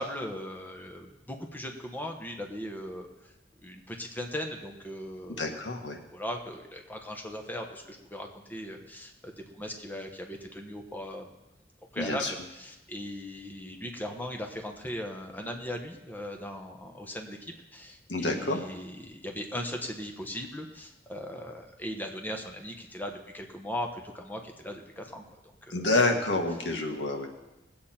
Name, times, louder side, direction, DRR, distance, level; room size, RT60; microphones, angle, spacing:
voice 1, 0.0-3.3 3.6-5.5 6.1-11.3 11.9-25.2 25.6-25.7, left 1 dB, 10° left, 3 dB, 1.2 m, -38 dB
voice 2, 5.4-6.0 12.0-12.3 18.1-18.6 25.7-27.3, left 2 dB, 90° left, 3 dB, 1.7 m, -28 dB
20.0 x 8.5 x 4.4 m, 1.0 s
head